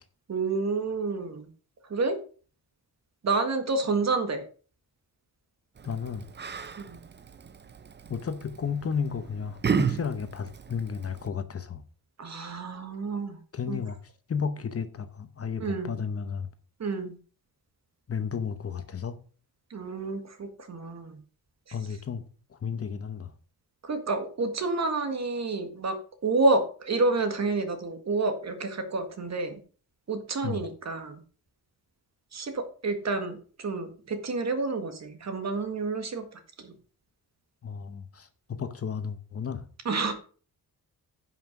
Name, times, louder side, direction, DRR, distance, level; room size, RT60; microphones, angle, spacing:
voice 1, 0.3-1.5 1.9-2.2 3.2-4.4 6.8-7.0 12.2-13.4 13.7-13.8 15.6-15.9 16.8-17.2 19.7-21.2 23.8-26.0 26.2-29.6 30.1-31.2 32.3-36.3 36.6-36.7 39.9-40.1, right 3 dB, 45° right, 1.8 m, -29 dB
voice 2, 5.8-6.2 8.1-11.8 13.5-14.0 14.3-16.5 18.1-19.2 21.7-22.2 22.5-23.3 30.4-30.6 37.6-39.7, left 6 dB, 40° left, 0.9 m, -33 dB
Yell, 5.8-11.3, right 6 dB, 30° right, 0.6 m, -34 dB
10.0 x 5.9 x 5.9 m
wide cardioid pair, 160°, 37 cm